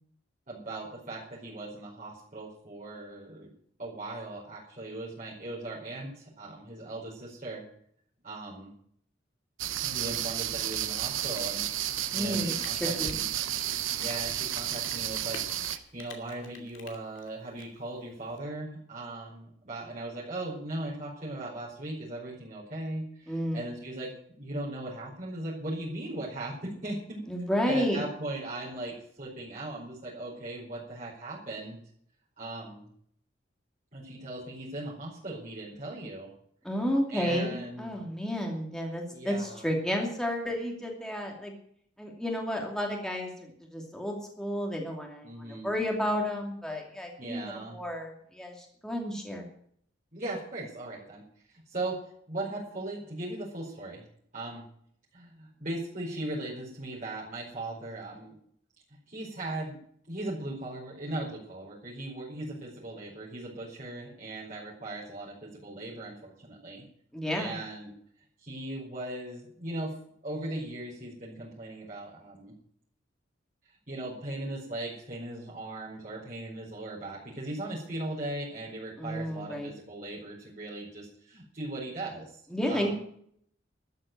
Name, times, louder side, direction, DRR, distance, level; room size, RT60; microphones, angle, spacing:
voice 1, 0.5-3.5 3.8-7.6 8.2-8.7 9.8-11.6 12.1-13.3 13.9-15.4 15.9-27.2 27.6-31.8 32.4-32.9 33.9-36.3 37.1-37.9 39.1-39.7 45.2-45.8 47.2-47.8 50.1-51.2 51.5-54.0 54.3-54.6 55.1-58.3 59.1-59.8 60.1-66.8 67.3-67.9 68.4-70.0 70.2-72.5 73.9-82.4 82.7-82.9, right 2 dB, 40° right, -7 dB, 5.0 m, -38 dB
sound 1, 9.6-15.8, right 12 dB, 90° right, 1.0 m, -32 dB
Rain, 11.6-18.4, left 4 dB, 80° left, 2.6 m, -48 dB
voice 2, 12.1-13.2 23.3-23.6 27.3-28.0 36.6-41.5 42.0-49.5 67.1-67.6 79.0-79.7 82.5-82.9, equal, 5° left, 0 dB, 2.6 m, -32 dB
13.5 x 8.6 x 9.3 m, 0.65 s
head